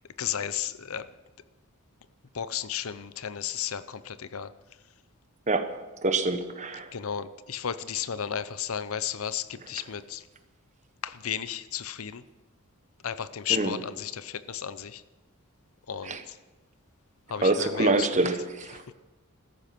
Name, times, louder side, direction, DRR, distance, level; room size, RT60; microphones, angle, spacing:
voice 1, 0.2-1.1 2.3-4.5 6.9-10.2 11.0-12.2 13.0-15.0 15.9-16.2 17.3-18.1, left 8 dB, 70° left, 14 dB, 0.7 m, -33 dB
voice 2, 6.0-6.9 13.5-13.8 16.0-16.2 17.4-18.9, right 2 dB, 35° right, 8 dB, 1.2 m, -26 dB
15.5 x 13.5 x 6.0 m, 1.2 s
head